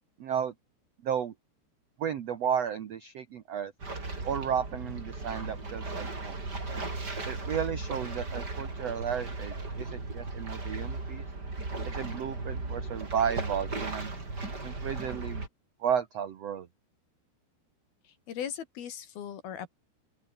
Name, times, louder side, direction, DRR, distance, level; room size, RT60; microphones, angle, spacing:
voice 1, 0.2-0.5 1.0-1.3 2.0-3.7 4.2-6.4 7.3-11.2 11.9-14.1 14.6-15.4 15.8-16.7, right 8 dB, 75° right, 1.4 m, -33 dB
sound 1, 3.8-15.5, right 3 dB, 25° right, 5.1 m, -36 dB
voice 2, 18.3-19.7, left 9 dB, 65° left, 4.0 m, -38 dB
open air
omnidirectional pair, 5.0 m